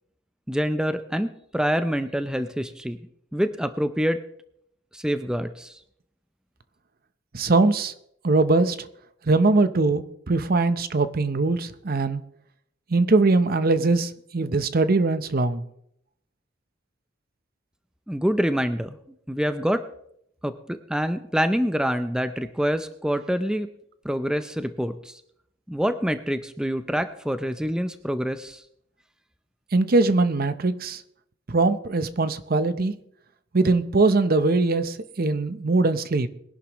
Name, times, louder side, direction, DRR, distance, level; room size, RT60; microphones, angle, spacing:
voice 1, 0.5-3.0 3.3-4.2 4.9-5.8 18.1-19.0 19.3-19.9 20.4-23.7 24.0-25.2 25.7-28.6, equal, 5° right, 10 dB, 0.5 m, -26 dB
voice 2, 7.3-7.9 8.2-8.9 9.2-12.2 12.9-15.7 29.7-31.0 31.5-32.9 33.5-36.3, right 3 dB, 50° right, 12 dB, 0.8 m, -21 dB
22.0 x 11.0 x 3.1 m, 0.71 s
head